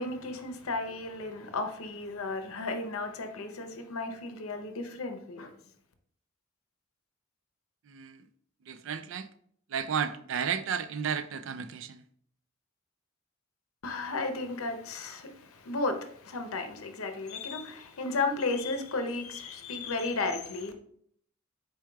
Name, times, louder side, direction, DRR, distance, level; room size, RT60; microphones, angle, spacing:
voice 1, 0.0-5.5 13.8-20.7, left 3 dB, 80° left, 0.7 m, -34 dB
voice 2, 7.9-8.3 8.6-9.3 9.7-12.0, right 7 dB, 60° right, 0.4 m, -33 dB
4.7 x 4.4 x 2.3 m
head